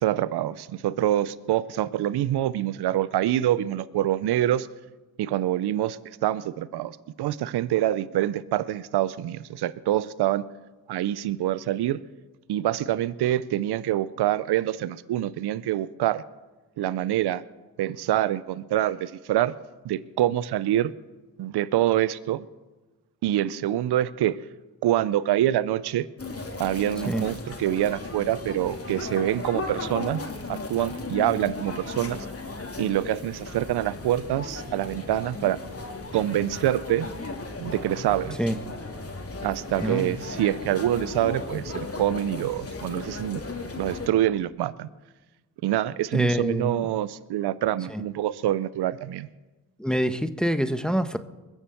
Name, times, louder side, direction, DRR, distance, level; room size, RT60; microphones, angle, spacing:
voice 1, 0.0-4.7 5.2-10.4 10.9-12.0 12.5-16.2 16.8-17.4 17.8-19.5 19.8-20.9 21.4-22.4 23.2-24.4 24.8-26.1 26.6-30.2 30.5-32.2 32.8-35.6 36.1-37.1 37.6-38.4 39.4-43.4 43.8-44.9 45.6-49.3, right 12 dB, 85° right, 18 dB, 0.6 m, -26 dB
sound 1, 26.2-44.1, left 3 dB, 35° left, 2.8 m, -36 dB
voice 2, 39.8-40.1 46.1-46.9 47.9-48.0 49.8-51.2, equal, ahead, 10 dB, 1.0 m, -26 dB
21.0 x 7.2 x 7.7 m, 1.2 s
supercardioid pair, 45°, 39 cm